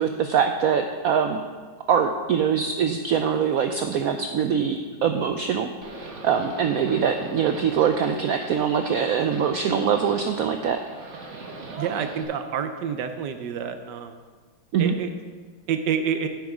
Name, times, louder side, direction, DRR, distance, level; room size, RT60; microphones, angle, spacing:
voice 1, 0.0-1.4 1.9-10.8 14.7-14.9, right 7 dB, 90° right, 6 dB, 0.7 m, -23 dB
Livestock farm animals working animals, 5.8-12.2, right 3 dB, 45° right, 1.3 m, -41 dB
voice 2, 11.8-14.2 14.8-15.1 15.7-16.3, right 7 dB, 70° right, 8 dB, 1.2 m, -28 dB
9.3 x 8.1 x 4.9 m, 1.5 s
omnidirectional pair, 2.1 m